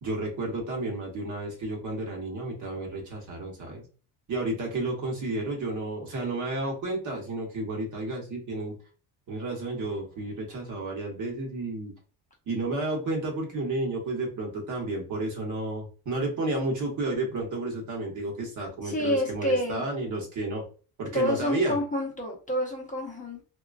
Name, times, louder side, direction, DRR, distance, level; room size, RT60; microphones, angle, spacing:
voice 1, 0.0-3.9 4.3-8.7 9.3-11.9 12.5-20.6 21.0-21.8, right 2 dB, 45° right, 1 dB, 1.0 m, -31 dB
voice 2, 18.8-19.8 21.1-23.4, left 1 dB, 20° left, -2 dB, 0.7 m, -28 dB
3.0 x 2.2 x 2.4 m, 0.37 s
cardioid pair, 145°, 41 cm